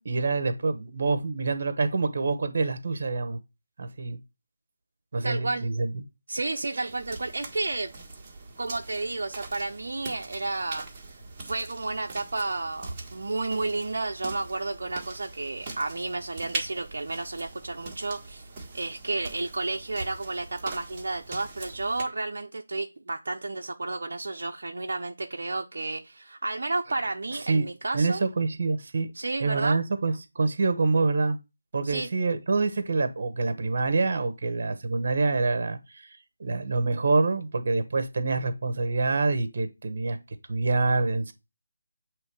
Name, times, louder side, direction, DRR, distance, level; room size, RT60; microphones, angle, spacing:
voice 1, 0.0-3.4 3.8-4.2 5.1-6.0 6.8-6.9 27.5-27.6 27.9-29.1 29.4-31.4 31.7-40.2 40.5-41.3, right 3 dB, 45° right, 1.1 m, -26 dB
voice 2, 5.2-5.7 6.3-7.9 8.6-10.9 11.4-18.5 18.7-28.2 29.1-29.8 31.8-32.1, right 2 dB, 60° right, 0.6 m, -31 dB
sound 1, 6.9-22.0, right 3 dB, 15° right, 1.6 m, -42 dB
8.0 x 3.2 x 4.8 m
figure-of-eight pair, 160°, 0 cm